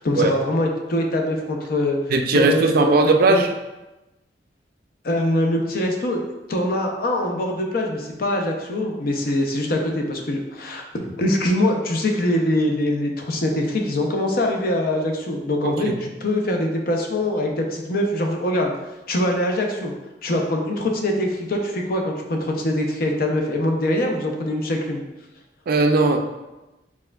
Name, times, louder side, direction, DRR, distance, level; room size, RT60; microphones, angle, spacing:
voice 1, 0.0-2.0 2.3-2.9 3.3-3.4 5.0-6.2 6.5-18.7 19.1-19.9 20.2-25.0, left 1 dB, 55° left, 2 dB, 0.6 m, -23 dB
voice 2, 2.1-3.5 15.6-16.0 25.7-26.2, right 3 dB, 55° right, 5 dB, 0.3 m, -18 dB
4.4 x 3.5 x 2.3 m, 1.0 s
head